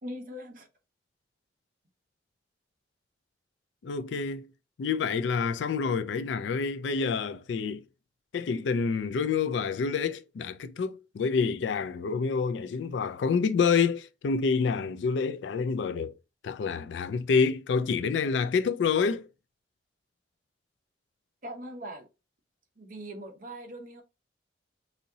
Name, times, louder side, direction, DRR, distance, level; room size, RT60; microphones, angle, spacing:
voice 1, 0.0-0.7 21.4-22.1 22.8-24.0, equal, 50° right, 0.9 m, -41 dB
voice 2, 3.8-4.5 4.8-7.8 8.3-16.1 16.4-19.3, left 5 dB, 85° left, 0.4 m, -28 dB
4.0 x 2.7 x 2.7 m
head